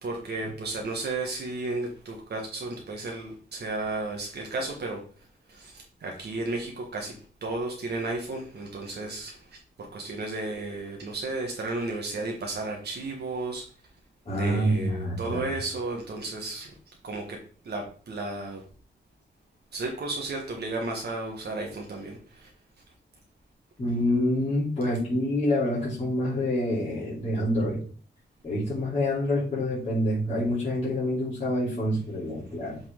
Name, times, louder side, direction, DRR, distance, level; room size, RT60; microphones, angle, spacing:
voice 1, 0.0-5.0 5.5-13.6 14.3-16.8 17.0-17.4 17.6-18.6 19.7-22.5, right 2 dB, 65° right, 0 dB, 1.5 m, -33 dB
voice 2, 14.2-15.4 23.8-27.8 28.4-32.8, left 1 dB, 35° left, -9 dB, 3.2 m, -27 dB
7.6 x 4.3 x 3.7 m, 0.41 s
wide cardioid pair, 125°, 19 cm